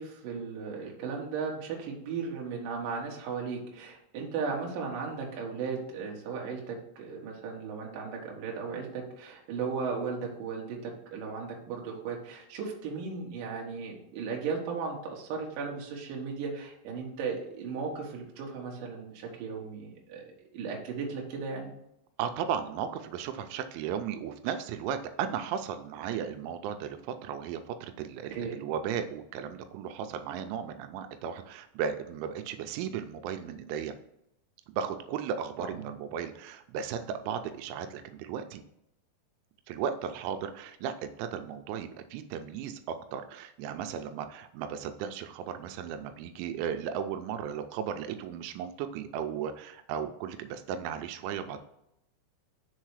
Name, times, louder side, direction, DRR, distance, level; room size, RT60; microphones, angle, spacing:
voice 1, 0.0-21.7 28.3-28.6 35.6-35.8, right 5 dB, 65° right, -1 dB, 2.3 m, -36 dB
voice 2, 22.2-34.0 34.7-38.6 39.7-51.6, right 8 dB, 85° right, 8 dB, 3.0 m, -35 dB
6.6 x 4.0 x 4.7 m, 0.81 s
omnidirectional pair, 5.4 m